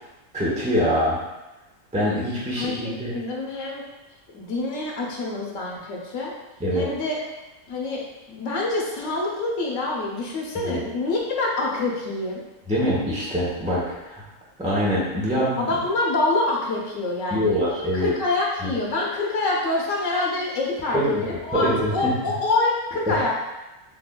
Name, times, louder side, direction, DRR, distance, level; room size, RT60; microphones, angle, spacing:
voice 1, 0.3-1.2 1.9-3.1 6.6-6.9 10.7-10.8 12.7-14.2 14.6-15.8 17.3-18.1 18.6-18.7 20.9-21.2 21.5-22.1 23.1-23.2, equal, 10° right, -7 dB, 0.6 m, -24 dB
voice 2, 2.6-3.8 4.3-6.3 6.7-7.2 7.7-8.0 8.3-12.4 15.6-17.6 17.9-23.3, left 2 dB, 90° left, -3 dB, 1.2 m, -26 dB
5.9 x 2.4 x 2.2 m, 1.0 s
omnidirectional pair, 1.3 m